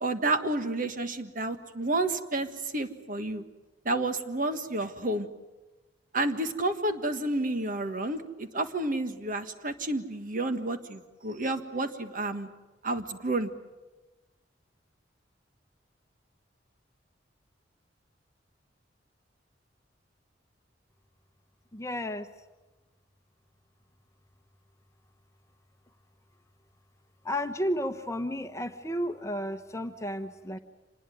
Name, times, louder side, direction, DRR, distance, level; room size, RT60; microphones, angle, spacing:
voice 1, 0.0-2.5 2.7-3.4 3.8-5.3 6.1-12.5 12.8-13.5, right 2 dB, 50° right, 9 dB, 1.6 m, -30 dB
voice 2, 21.7-22.3 27.2-30.6, equal, 15° left, 8 dB, 1.0 m, -32 dB
26.5 x 20.0 x 9.4 m, 1.1 s
head